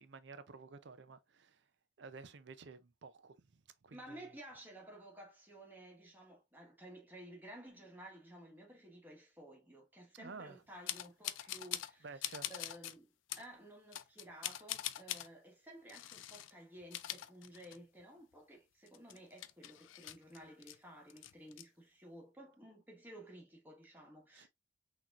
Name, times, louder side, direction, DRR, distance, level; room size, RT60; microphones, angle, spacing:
voice 1, 0.0-1.7 2.0-4.4 10.1-10.6 12.0-12.5 24.3-24.5, right 4 dB, 65° right, 0.6 m, -52 dB
voice 2, 3.9-24.5, right 1 dB, 10° right, 1.4 m, -54 dB
sound 1, 10.9-11.9 12.2-12.9 13.3-13.5 13.9-15.3 15.9-16.5 16.8-18.0 18.3-18.4 18.9-20.8 21.1-21.6, left 13 dB, 85° left, 0.4 m, -43 dB
6.0 x 2.9 x 2.4 m
head